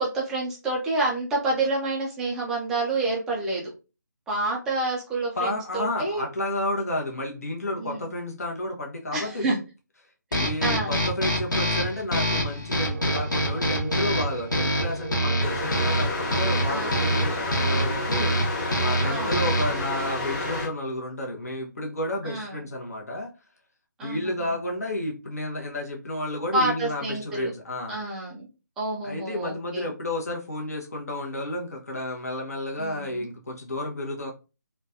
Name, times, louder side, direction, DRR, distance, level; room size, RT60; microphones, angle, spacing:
voice 1, 0.0-3.7 4.3-6.2 7.8-8.1 9.1-9.6 10.3-10.9 16.7-17.0 19.0-19.4 22.2-22.6 24.0-24.5 26.5-27.5 27.9-28.5 28.8-29.9 32.8-33.3, right 2 dB, 5° right, 0.3 m, -28 dB
voice 2, 5.3-9.5 10.3-23.3 24.0-28.0 29.0-34.3, left 1 dB, 55° left, 0.8 m, -31 dB
sound 1, 10.3-19.9, equal, 80° left, 1.0 m, -26 dB
sound 2, 12.9-18.0, right 6 dB, 65° right, 0.7 m, -39 dB
sound 3, 15.4-20.7, left 2 dB, 30° left, 1.3 m, -30 dB
3.1 x 2.2 x 2.5 m
figure-of-eight pair, 150°, 10 cm